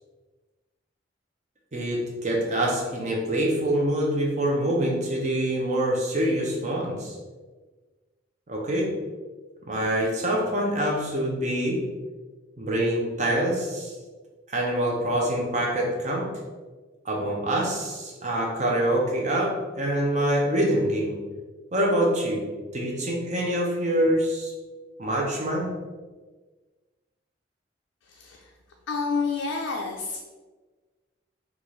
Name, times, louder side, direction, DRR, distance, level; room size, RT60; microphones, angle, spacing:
voice 1, 1.7-7.2 8.5-8.9 9.7-11.8 12.6-13.9 14.5-16.3 17.0-21.1 21.7-24.5 25.0-25.7, right 1 dB, 40° right, -1 dB, 0.6 m, -25 dB
voice 2, 28.0-28.5 28.9-30.2, left 4 dB, 90° left, 0 dB, 0.4 m, -29 dB
4.1 x 2.4 x 3.1 m, 1.3 s
head